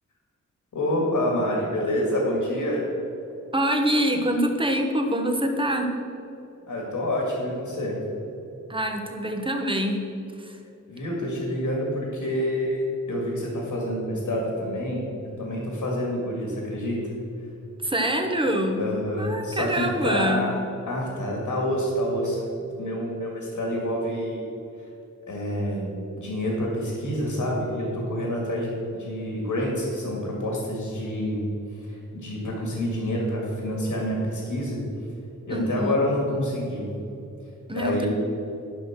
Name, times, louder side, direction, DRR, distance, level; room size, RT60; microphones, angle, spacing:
voice 1, 0.7-2.8 6.7-8.0 10.9-15.0 15.4-17.0 18.8-20.6 20.9-22.4 22.8-24.4 25.3-31.4 31.8-34.8 35.5-36.9 37.7-38.1, left 1 dB, 85° left, -2 dB, 2.3 m, -27 dB
voice 2, 3.5-5.9 8.7-10.0 10.4-10.6 17.8-18.9 19.2-20.5 35.5-36.0 37.7-38.1, equal, 15° right, 3 dB, 1.3 m, -25 dB
11.0 x 5.9 x 6.1 m, 2.9 s
cardioid pair, 70°, 31 cm